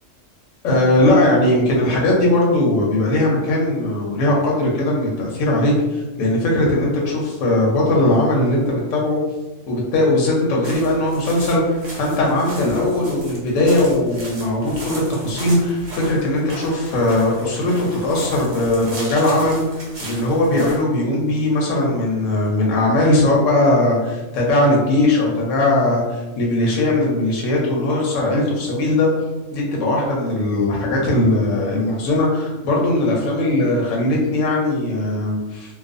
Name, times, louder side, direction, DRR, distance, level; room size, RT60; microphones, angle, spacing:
voice 1, 0.6-9.2 9.7-19.6 20.0-29.1 29.5-35.8, left 1 dB, 80° left, -2 dB, 0.9 m, -19 dB
sound 1, 10.6-20.8, right 1 dB, 45° right, 0.7 m, -36 dB
2.4 x 2.3 x 2.5 m, 1.1 s
omnidirectional pair, 1.3 m